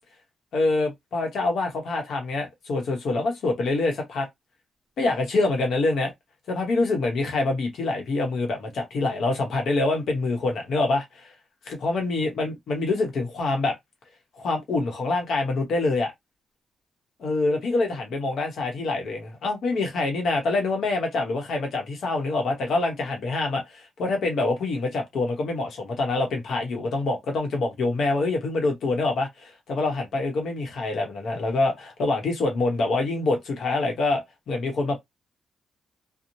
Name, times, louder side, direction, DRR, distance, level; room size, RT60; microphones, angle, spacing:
voice 1, 0.5-4.3 5.0-6.1 6.5-11.3 11.7-13.8 14.4-16.1 17.2-35.0, left 2 dB, 60° left, 0.8 m, -25 dB
2.6 x 2.0 x 2.9 m
wide cardioid pair, 160°, 0 cm